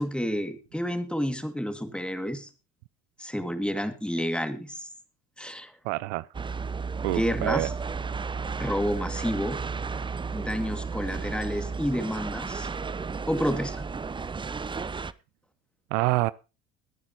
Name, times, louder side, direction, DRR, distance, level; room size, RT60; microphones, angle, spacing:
voice 1, 0.0-2.5 3.2-4.9 5.4-5.7 7.0-7.7 8.6-9.6 10.3-12.7 13.3-13.8, equal, 5° left, 2.2 m, -30 dB
voice 2, 5.8-6.3 7.0-7.7 15.9-16.3, right 21 dB, 65° right, 0.5 m, -26 dB
sound 1, 6.3-15.1, right 5 dB, 15° right, 0.6 m, -33 dB
21.0 x 9.6 x 3.0 m
hypercardioid pair, 70°, 39 cm